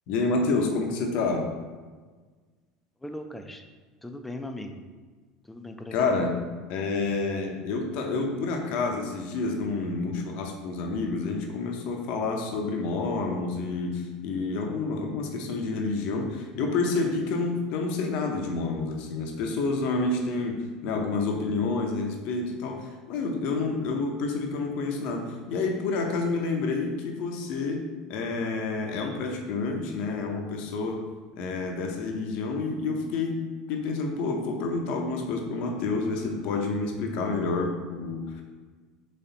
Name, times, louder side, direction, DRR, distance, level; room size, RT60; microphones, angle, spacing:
voice 1, 0.1-1.5 5.9-6.3 6.7-27.8 28.1-31.1 31.4-38.4, left 3 dB, 65° left, 2 dB, 0.7 m, -29 dB
voice 2, 3.0-3.6 4.0-4.8 5.4-6.1, left 1 dB, 10° left, 6 dB, 0.5 m, -38 dB
4.1 x 3.2 x 4.0 m, 1.4 s
hypercardioid pair, 85°, 2 cm